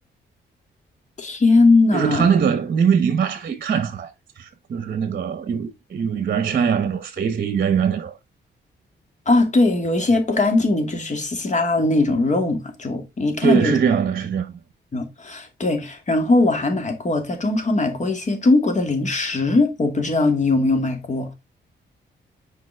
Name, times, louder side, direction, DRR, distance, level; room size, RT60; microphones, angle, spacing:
voice 1, 1.2-2.3 9.3-13.7 14.9-21.3, left 2 dB, 40° left, 2.4 m, -20 dB
voice 2, 1.9-4.1 4.4-8.1 13.4-14.5, right 7 dB, 50° right, 1.0 m, -21 dB
7.3 x 5.1 x 3.4 m
cardioid pair, 85°, 19 cm